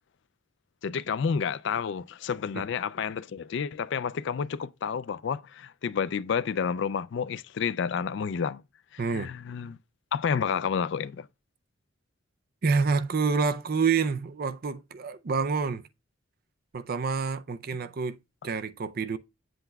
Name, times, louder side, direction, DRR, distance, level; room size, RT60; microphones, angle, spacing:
voice 1, 0.8-8.6 9.1-9.8 10.1-11.3, left 6 dB, 60° left, 0.4 m, -30 dB
voice 2, 9.0-9.3 12.6-15.8 16.7-18.2 18.4-19.2, right 5 dB, 50° right, 0.5 m, -27 dB
8.9 x 7.8 x 2.3 m
head